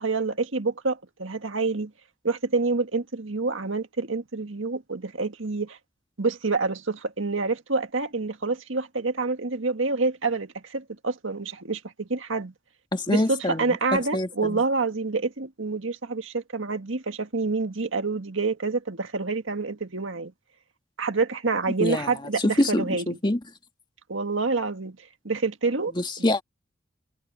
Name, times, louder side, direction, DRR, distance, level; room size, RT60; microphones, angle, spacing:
voice 1, 0.0-1.9 2.2-5.8 6.2-12.5 13.1-20.3 21.0-23.2 24.1-25.0 25.2-25.9 26.2-26.3, right 3 dB, 90° right, 1.8 m, -27 dB
voice 2, 12.9-13.6 13.9-14.6 21.8-22.1 22.4-23.4 26.0-26.4, left 1 dB, 25° left, 1.8 m, -25 dB
head